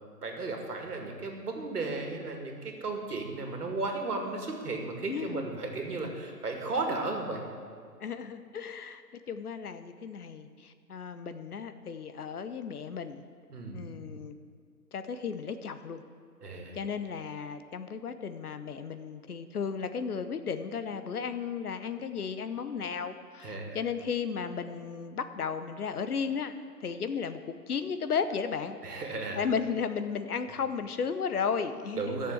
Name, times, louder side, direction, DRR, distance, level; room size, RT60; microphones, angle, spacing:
voice 1, 0.2-7.4 13.5-14.2 16.4-16.8 23.4-23.8 28.8-29.5 32.0-32.3, right 3 dB, 65° right, 3 dB, 2.3 m, -35 dB
voice 2, 5.1-5.4 8.0-9.0 9.3-13.2 13.7-14.4 14.9-16.0 16.7-26.5 26.8-29.0 29.4-32.3, left 6 dB, 65° left, 10 dB, 1.0 m, -34 dB
12.0 x 6.9 x 8.1 m, 2.2 s
figure-of-eight pair, 150°, 50 cm